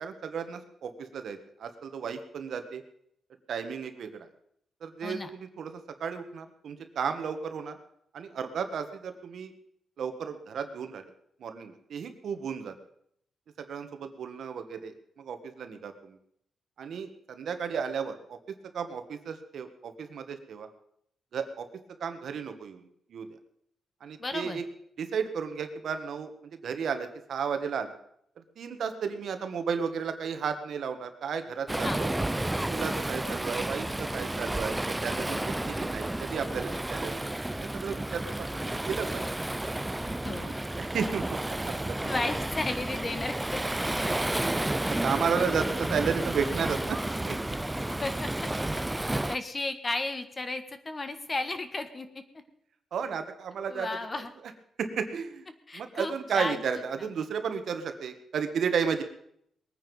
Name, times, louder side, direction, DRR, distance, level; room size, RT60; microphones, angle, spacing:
voice 1, 0.0-2.8 3.5-4.3 4.8-7.8 8.1-9.5 10.0-11.1 11.4-12.7 13.6-16.2 16.8-20.7 21.3-21.7 22.0-22.8 23.1-23.3 24.0-24.6 25.0-26.3 26.6-27.9 28.6-32.1 32.7-37.2 37.6-39.3 40.2-40.5 40.8-42.1 45.0-47.0 47.3-47.4 52.9-53.9 54.8-55.5 55.7-59.0, right 6 dB, 65° right, 8 dB, 1.6 m, -33 dB
voice 2, 24.2-24.6 31.8-32.0 40.1-40.5 42.0-43.6 44.1-44.2 47.5-47.6 47.8-48.3 48.8-52.2 53.7-54.3 55.7-56.8, left 2 dB, 25° left, 10 dB, 1.4 m, -34 dB
Waves surf, 31.7-49.4, right 1 dB, 10° right, 0.5 m, -31 dB
21.0 x 9.5 x 5.5 m, 0.71 s
cardioid pair, 130°, 0 cm